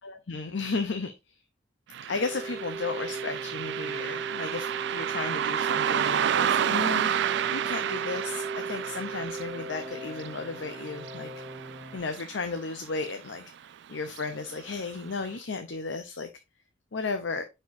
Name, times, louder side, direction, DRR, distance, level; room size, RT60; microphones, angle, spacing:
voice 1, 0.0-1.1 2.1-11.3 11.9-13.4 13.9-16.3 16.9-17.4, left 4 dB, 80° left, 0.7 m, -34 dB
Car passing by, 1.9-12.7 13.0-13.1 14.1-14.2 14.7-14.8 15.3-15.4, right 9 dB, 65° right, 0.3 m, -31 dB
sound 1, 2.1-12.0, right 3 dB, 5° right, 1.7 m, -38 dB
9.6 x 4.4 x 2.6 m
head